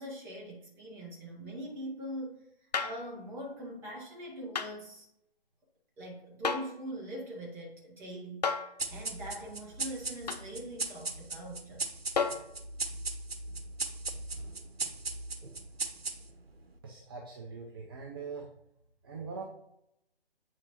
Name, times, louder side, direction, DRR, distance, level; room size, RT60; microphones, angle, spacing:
voice 1, 0.0-5.1 6.0-8.5 8.9-11.8, equal, 5° right, -4 dB, 1.3 m, -42 dB
sound 1, 2.7-3.1 4.5-4.8 6.4-6.8 8.4-8.8 10.3-10.5 12.2-12.5 14.1-14.2, left 5 dB, 40° left, 0.6 m, -32 dB
sound 2, 8.8-16.5, right 3 dB, 75° right, 1.2 m, -38 dB
voice 2, 16.8-18.5 19.0-19.4, right 5 dB, 25° right, -1 dB, 0.7 m, -42 dB
8.4 x 5.9 x 3.0 m, 0.78 s
figure-of-eight pair, 150°, 31 cm